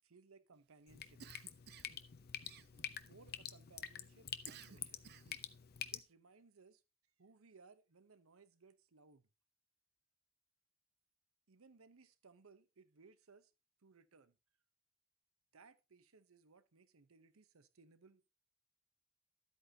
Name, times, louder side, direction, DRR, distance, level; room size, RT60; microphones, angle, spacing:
voice 1, 0.0-1.2 3.0-5.1 5.9-6.8 7.2-9.2 11.5-13.5 13.8-14.3 15.5-18.3, right 4 dB, 85° right, 0.8 m, -64 dB
Drip, 0.9-6.0, left 9 dB, 50° left, 0.7 m, -48 dB
Cough, 1.2-2.0 2.4-3.1 4.5-5.5, right 7 dB, 50° right, 0.6 m, -57 dB
12.5 x 8.4 x 2.8 m
head